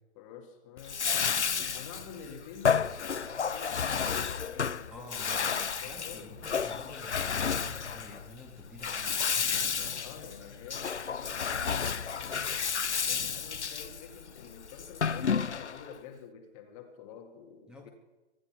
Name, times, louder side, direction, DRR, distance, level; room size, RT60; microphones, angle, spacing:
voice 1, 0.2-1.1 1.7-6.3 10.0-12.7 13.1-17.9, left 7 dB, 30° left, 3 dB, 2.0 m, -48 dB
Bathtub (filling or washing), 0.8-15.9, left 6 dB, 85° left, 0.6 m, -31 dB
voice 2, 4.9-10.0 17.7-17.9, left 2 dB, ahead, 1 dB, 2.1 m, -49 dB
24.0 x 10.0 x 6.0 m, 1.2 s
figure-of-eight pair, 125°, 34 cm